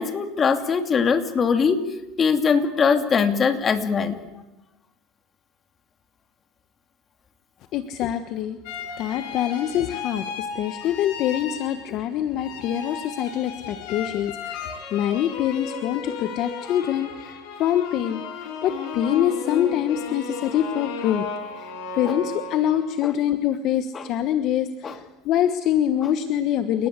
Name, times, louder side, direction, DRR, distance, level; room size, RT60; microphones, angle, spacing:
voice 1, 0.0-1.8 2.2-4.2 22.1-22.2 23.0-23.1 23.9-24.0 24.8-24.9, left 6 dB, 25° left, 7 dB, 2.7 m, -21 dB
voice 2, 7.7-8.6 9.0-18.2 18.6-21.3 21.5-26.9, left 10 dB, 50° left, 9 dB, 1.4 m, -25 dB
sound 1, 8.6-12.1 12.4-23.0, left 5 dB, 65° left, 5.8 m, -34 dB
29.5 x 19.0 x 8.3 m, 1.0 s
supercardioid pair, 125°, 0 cm